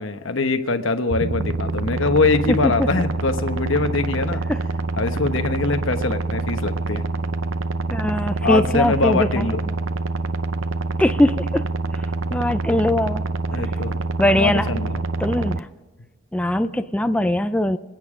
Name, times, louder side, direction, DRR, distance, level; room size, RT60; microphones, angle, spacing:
voice 1, 0.0-4.4 5.0-7.0 8.4-9.6 13.5-14.0 14.3-15.0, left 3 dB, 80° left, 9 dB, 1.1 m, -23 dB
sound 1, 1.1-15.6, right 3 dB, 80° right, 0.7 m, -26 dB
voice 2, 7.9-9.5 11.0-11.6 12.3-13.2 14.2-14.7 15.2-15.7 16.3-17.8, left 1 dB, 5° left, 10 dB, 0.4 m, -21 dB
25.5 x 9.2 x 5.0 m, 1.3 s
head